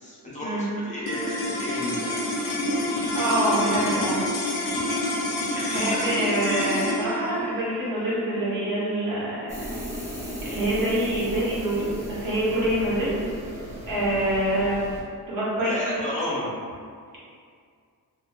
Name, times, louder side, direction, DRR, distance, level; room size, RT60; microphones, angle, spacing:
voice 1, 0.0-2.4 3.0-3.1 5.5-6.1 15.6-16.5, left 1 dB, 20° left, -8 dB, 0.6 m, -33 dB
sound 1, 1.0-11.5, left 1 dB, 75° left, 0.5 m, -29 dB
voice 2, 2.9-4.2 5.4-9.6 10.4-13.2 13.9-14.9 15.3-16.0, right 1 dB, 60° right, -8 dB, 1.0 m, -26 dB
sound 2, 9.5-15.0, equal, 10° right, 0.8 m, -36 dB
2.7 x 2.2 x 2.3 m, 2.2 s
cardioid pair, 90°, 38 cm